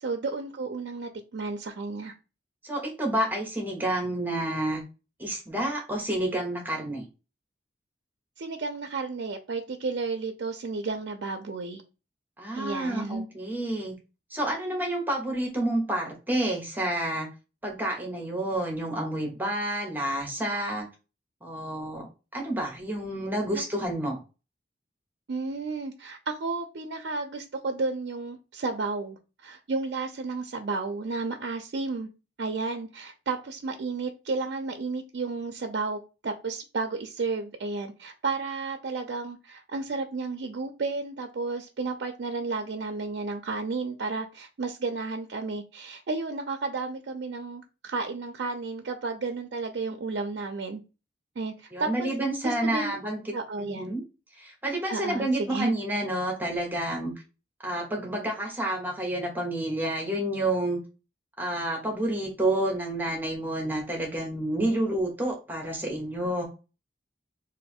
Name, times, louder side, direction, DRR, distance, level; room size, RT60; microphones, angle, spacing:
voice 1, 0.0-2.1 8.4-11.8 12.5-13.3 25.3-32.1 32.4-50.8 51.4-52.1 52.4-53.0 53.3-54.0 54.9-55.7, right 3 dB, 75° right, 5 dB, 0.4 m, -32 dB
voice 2, 2.6-4.8 5.2-7.0 12.4-13.9 14.3-17.3 17.6-20.9 21.4-22.1 22.3-24.2 51.7-53.3 53.6-54.0 54.4-57.1 57.6-60.8 61.4-66.5, right 1 dB, 10° right, 0 dB, 0.9 m, -29 dB
3.1 x 2.5 x 4.2 m, 0.31 s
head